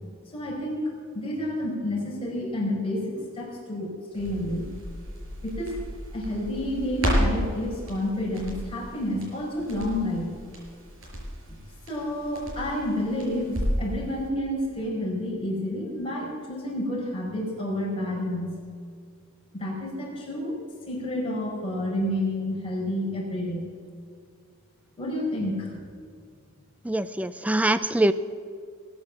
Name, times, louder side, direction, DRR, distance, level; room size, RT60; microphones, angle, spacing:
voice 1, 0.3-4.7 5.4-5.8 6.1-10.4 11.5-11.6 11.9-18.6 19.5-20.6 20.9-23.7 25.0-25.8, left 1 dB, 25° left, -4 dB, 5.1 m, -30 dB
Crackle, 4.1-13.9 14.2-14.3, equal, 65° right, 5.5 m, -32 dB
voice 2, 26.8-28.1, right 1 dB, 5° right, 14 dB, 0.4 m, -23 dB
20.0 x 8.9 x 7.3 m, 2.1 s
head